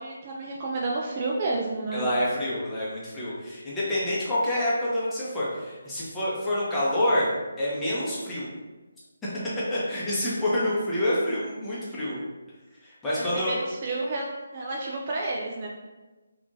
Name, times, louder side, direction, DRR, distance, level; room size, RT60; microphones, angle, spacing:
voice 1, 0.0-2.1 13.2-15.7, right 2 dB, 30° right, -2 dB, 0.3 m, -31 dB
voice 2, 1.9-7.3 7.6-8.5 9.2-9.3 9.7-12.2 12.8-13.6, left 1 dB, 10° left, -10 dB, 0.8 m, -27 dB
3.5 x 2.5 x 2.5 m, 1.2 s
figure-of-eight pair, 150°, 0 cm